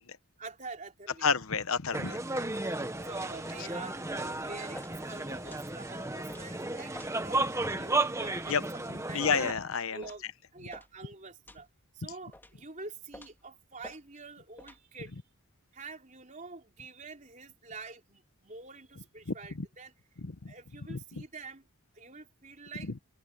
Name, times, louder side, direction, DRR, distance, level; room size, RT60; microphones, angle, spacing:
voice 1, 0.4-1.3 2.1-2.5 3.0-8.6 8.9-9.3 9.9-10.2 10.5-11.7 11.9-15.2 15.7-19.9 20.5-21.6 21.9-22.9, right 3 dB, 35° right, 4.2 m, -46 dB
voice 2, 1.2-2.2 8.5-8.6 9.1-10.0 19.6-19.7 20.2-20.5 20.9-21.0, left 5 dB, 70° left, 1.0 m, -29 dB
Carmel Market, 1.9-9.5, right 2 dB, 15° right, 1.3 m, -34 dB
sound 1, 3.4-3.6 4.1-4.3 4.7-4.9 5.4-5.7 6.3-6.4 6.9-7.1 7.6-7.8 8.4-8.5 9.2-9.4 10.0-10.2 10.7-10.9 11.5-11.7 12.3-12.6 13.1-13.4 13.8-14.0 14.6-14.8, left 1 dB, 10° left, 3.3 m, -49 dB
head